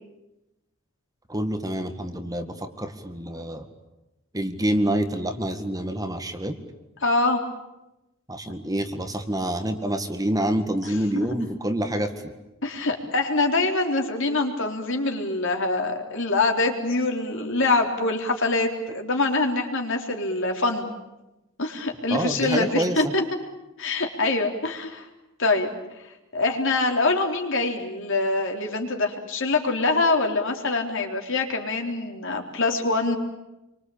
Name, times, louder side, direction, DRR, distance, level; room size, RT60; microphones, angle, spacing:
voice 1, 1.3-3.7 4.3-6.6 8.3-12.1 22.1-23.0, right 1 dB, 20° right, 7 dB, 1.9 m, -27 dB
voice 2, 7.0-7.4 10.9-11.3 12.6-20.9 21.6-23.2 23.8-25.1 25.4-25.7 26.3-33.2, left 3 dB, 65° left, 3 dB, 3.8 m, -24 dB
28.5 x 24.0 x 8.8 m, 0.97 s
head